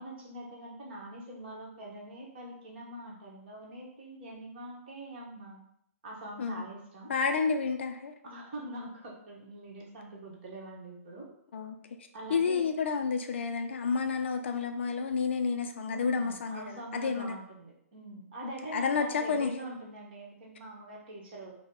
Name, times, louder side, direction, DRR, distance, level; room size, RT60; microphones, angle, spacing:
voice 1, 0.0-5.6 6.0-7.1 8.2-11.3 12.1-12.7 15.9-21.5, right 1 dB, 40° right, -2 dB, 1.2 m, -44 dB
voice 2, 7.1-8.1 11.5-11.7 12.3-17.4 18.4-19.5, left 5 dB, 50° left, 6 dB, 0.4 m, -30 dB
5.1 x 2.2 x 3.6 m, 0.72 s
figure-of-eight pair, 120°, 8 cm